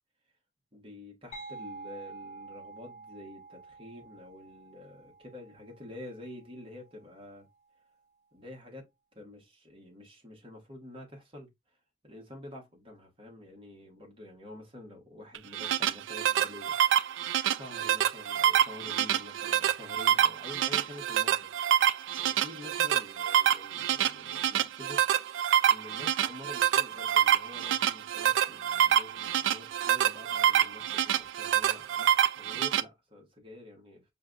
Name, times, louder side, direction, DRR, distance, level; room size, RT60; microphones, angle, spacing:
voice 1, 0.7-7.5 8.3-11.5 12.0-16.8 17.5-21.5 22.2-25.0 25.7-34.0, left 1 dB, 30° right, 1.3 m, -48 dB
sound 1, 1.3-6.8, right 3 dB, 40° left, 0.9 m, -48 dB
sound 2, 15.3-32.8, right 10 dB, 85° right, 0.3 m, -26 dB
5.4 x 2.2 x 2.5 m
head